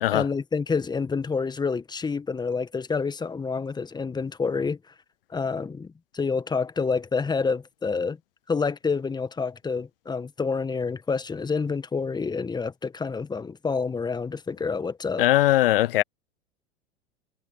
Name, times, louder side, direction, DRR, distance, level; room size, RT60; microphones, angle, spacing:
voice 1, 0.1-4.8 5.3-8.2 8.5-15.3, left 5 dB, 15° left, 1.8 m, -28 dB
voice 2, 15.2-16.0, left 15 dB, 60° left, 0.9 m, -20 dB
figure-of-eight pair, 90°, 32 cm